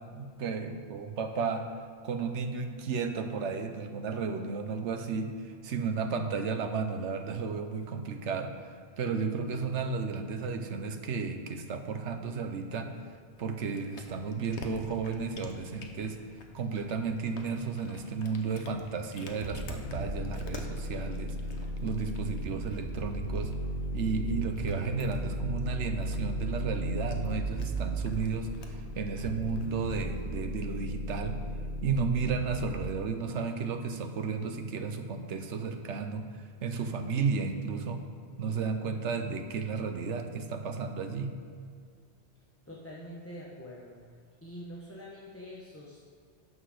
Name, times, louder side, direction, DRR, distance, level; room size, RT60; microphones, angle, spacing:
voice 1, 0.0-1.7 2.0-8.7 9.0-12.9 13.4-16.2 16.5-21.3 21.8-23.5 23.9-31.4 31.8-36.3 36.6-38.1 38.4-41.3, right 5 dB, 85° right, 6 dB, 1.1 m, -33 dB
Cat, 13.3-30.4, left 4 dB, 75° left, 1.2 m, -51 dB
sound 1, 19.4-32.7, right 1 dB, 45° right, 1.2 m, -35 dB
voice 2, 42.7-44.0 44.4-46.0, equal, 15° left, -4 dB, 1.0 m, -45 dB
9.4 x 5.9 x 6.4 m, 2.2 s
omnidirectional pair, 1.2 m